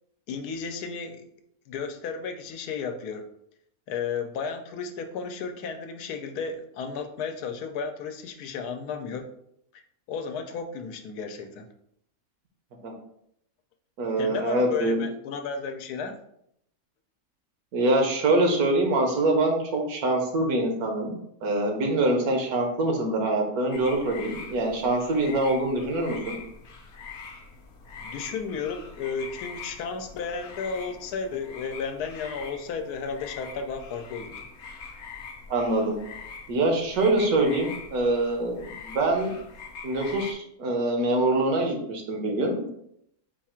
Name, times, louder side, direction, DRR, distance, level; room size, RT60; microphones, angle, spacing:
voice 1, 0.3-1.3 1.7-3.3 3.9-9.3 9.7-9.8 10.1-11.7 14.2-16.2 28.0-34.4, left 5 dB, 90° left, 6 dB, 1.1 m, -33 dB
voice 2, 14.0-15.0 17.7-26.4 35.5-36.0 36.5-39.4 39.8-42.6, right 2 dB, 75° right, 2 dB, 1.4 m, -24 dB
sound 1, 23.7-40.3, left 5 dB, 60° left, 0.8 m, -43 dB
4.8 x 2.4 x 4.3 m, 0.73 s
omnidirectional pair, 1.6 m